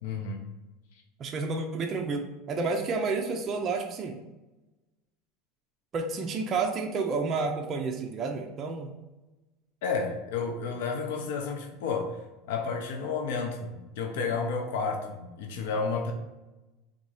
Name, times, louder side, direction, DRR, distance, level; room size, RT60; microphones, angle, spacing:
voice 1, 0.0-0.5 9.8-12.2 12.5-16.1, left 4 dB, 75° left, 3 dB, 0.6 m, -31 dB
voice 2, 1.2-4.2 5.9-8.9, right 4 dB, 25° right, 2 dB, 0.4 m, -30 dB
3.6 x 2.7 x 4.7 m, 1.0 s
supercardioid pair, 170°, 0 cm